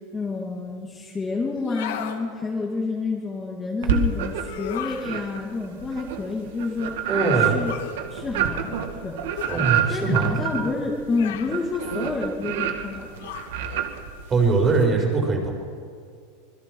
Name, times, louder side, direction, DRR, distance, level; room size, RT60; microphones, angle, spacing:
voice 1, 0.1-7.0 7.4-7.7 8.1-9.2 9.9-13.3, left 3 dB, 15° left, -2 dB, 2.1 m, -29 dB
sound 1, 1.6-2.2 4.4-5.1 7.7-8.0 9.4-9.7 11.1-11.6 13.2-13.6, left 10 dB, 85° left, 2.0 m, -34 dB
sound 2, 3.8-4.6 5.0-14.8, right 9 dB, 75° right, 2.1 m, -28 dB
voice 2, 7.1-7.6 9.5-10.3 14.3-15.5, right 3 dB, 20° right, 1 dB, 4.3 m, -21 dB
26.0 x 21.5 x 4.6 m, 2.2 s
supercardioid pair, 165°, 0 cm